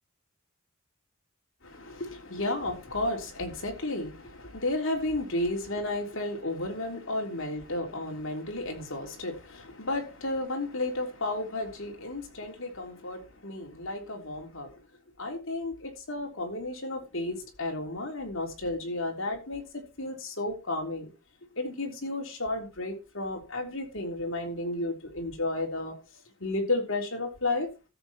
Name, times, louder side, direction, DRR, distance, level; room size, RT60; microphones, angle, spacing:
voice 1, 1.6-14.8 15.2-21.1 21.5-25.9 26.4-27.7, left 2 dB, 60° left, 3.5 m, -33 dB
13.5 x 7.7 x 4.3 m
head